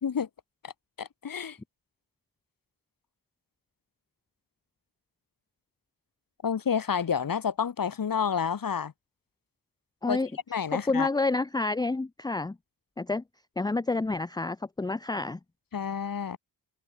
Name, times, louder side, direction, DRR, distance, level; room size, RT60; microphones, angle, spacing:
voice 1, 1.0-1.6 6.4-8.9 10.1-10.2 10.5-11.1 15.7-16.4, left 7 dB, 50° left, 1.3 m, -29 dB
voice 2, 10.7-12.6 13.0-13.2 13.6-15.4, left 3 dB, 10° left, 0.5 m, -29 dB
cardioid pair, 60°, 45 cm